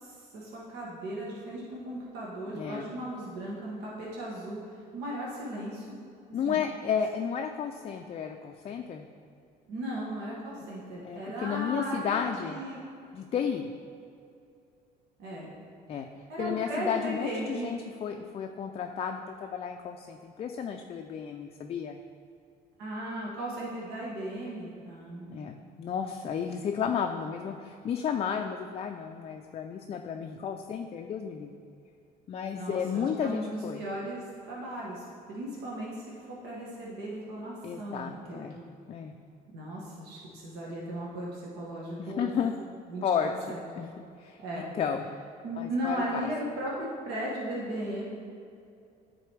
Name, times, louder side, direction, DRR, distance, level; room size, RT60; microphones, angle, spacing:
voice 1, 0.0-4.6 4.9-6.0 6.4-6.6 9.7-12.8 15.2-15.6 16.3-17.7 22.8-25.5 32.6-38.4 39.5-42.3 42.9-43.6 44.4-44.7 45.4-48.0, right 1 dB, 80° right, -4 dB, 1.2 m, -36 dB
voice 2, 6.3-9.1 11.0-12.6 13.1-13.7 15.9-16.1 16.4-22.0 25.3-31.6 32.3-33.8 37.6-38.6 38.9-39.1 42.0-42.5 43.0-43.9 44.2-45.0 45.6-46.2, left 7 dB, 35° left, 4 dB, 0.4 m, -32 dB
9.3 x 3.9 x 3.3 m, 2.5 s
cardioid pair, 110°, 17 cm